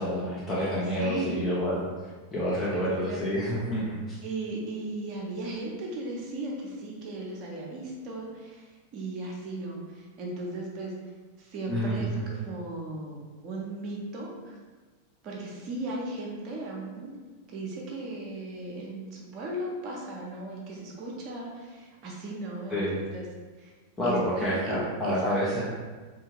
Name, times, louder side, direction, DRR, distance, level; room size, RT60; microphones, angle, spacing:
voice 1, 0.0-4.2 11.7-12.1 22.7-22.9 24.0-25.7, equal, 15° left, -8 dB, 0.6 m, -28 dB
voice 2, 1.0-1.5 2.7-3.4 4.2-8.7 8.9-10.9 11.4-14.6 15.2-17.1 17.5-23.3 23.6-23.7 24.0-25.2, right 2 dB, 35° right, -2 dB, 0.7 m, -36 dB
2.6 x 2.5 x 2.9 m, 1.3 s
figure-of-eight pair, 90°, 0 cm